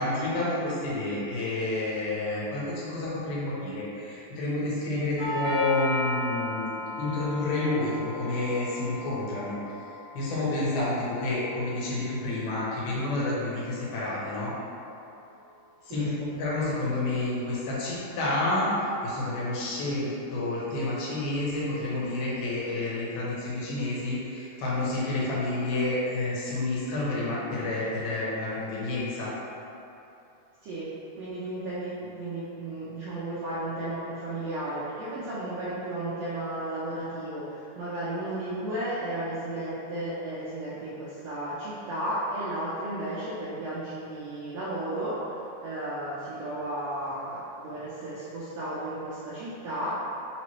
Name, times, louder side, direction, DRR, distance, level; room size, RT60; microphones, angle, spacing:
voice 1, 0.0-9.6 10.1-14.5 15.9-18.7 19.0-29.3, left 2 dB, 80° left, -7 dB, 2.5 m, -29 dB
Doorbell, 5.2-13.2, left 1 dB, 65° left, 1.5 m, -36 dB
voice 2, 31.2-50.0, right 1 dB, 80° right, -9 dB, 1.5 m, -34 dB
5.2 x 2.9 x 3.0 m, 2.8 s
omnidirectional pair, 3.6 m